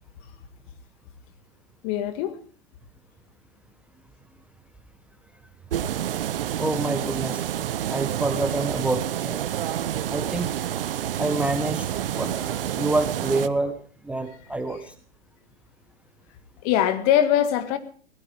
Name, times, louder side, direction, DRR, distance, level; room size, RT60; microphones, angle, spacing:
voice 1, 1.8-2.4 16.6-17.8, left 11 dB, 35° left, 1.9 m, -22 dB
sound 1, 5.7-13.5, right 10 dB, 60° right, 1.0 m, -28 dB
voice 2, 6.6-7.4 7.9-9.4 10.1-10.5 11.2-11.9 12.1-13.8 14.0-14.9, right 2 dB, 5° right, 1.1 m, -27 dB
23.0 x 17.5 x 3.5 m
figure-of-eight pair, 115°, 31 cm